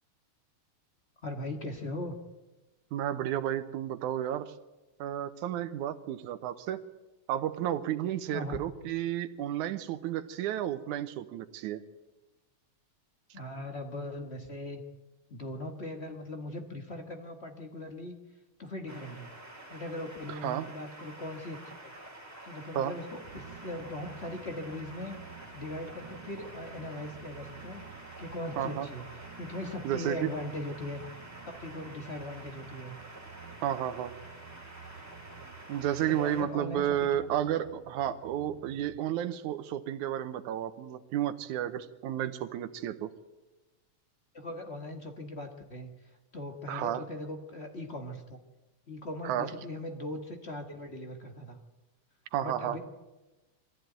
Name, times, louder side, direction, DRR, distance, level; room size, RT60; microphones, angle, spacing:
voice 1, 1.2-2.2 8.3-8.5 8.8-8.9 13.3-14.8 15.3-18.2 18.6-19.3 19.7-21.9 22.4-25.2 25.5-29.0 29.4-31.0 31.6-33.0 36.0-37.1 44.3-46.0 46.3-48.4 48.9-51.6 52.4-52.8, left 1 dB, 35° left, 5 dB, 1.1 m, -39 dB
voice 2, 2.9-4.5 5.0-6.8 7.3-11.8 20.4-20.7 22.8-22.9 28.6-28.9 29.8-30.3 33.6-34.1 35.7-43.1 46.7-47.0 49.2-49.5 52.3-52.8, right 11 dB, 90° right, 10 dB, 2.3 m, -32 dB
sound 1, 18.9-36.4, right 1 dB, 5° right, 3.3 m, -48 dB
sound 2, 23.1-39.0, right 7 dB, 65° right, 2.0 m, -51 dB
21.5 x 15.0 x 9.2 m, 1.1 s
omnidirectional pair, 3.4 m